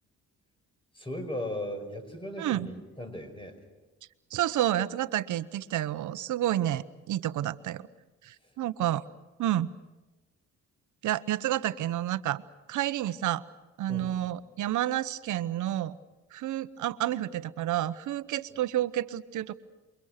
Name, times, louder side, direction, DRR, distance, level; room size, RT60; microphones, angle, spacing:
voice 1, 0.9-3.6 13.9-14.2, left 1 dB, 15° left, 7 dB, 5.4 m, -37 dB
voice 2, 4.3-7.9 8.2-9.0 9.4-9.7 11.0-12.4 12.7-13.4 13.8-16.0 16.3-19.5, right 13 dB, 75° right, 14 dB, 1.0 m, -30 dB
28.5 x 23.5 x 6.6 m, 1.1 s
cardioid pair, 90°, 30 cm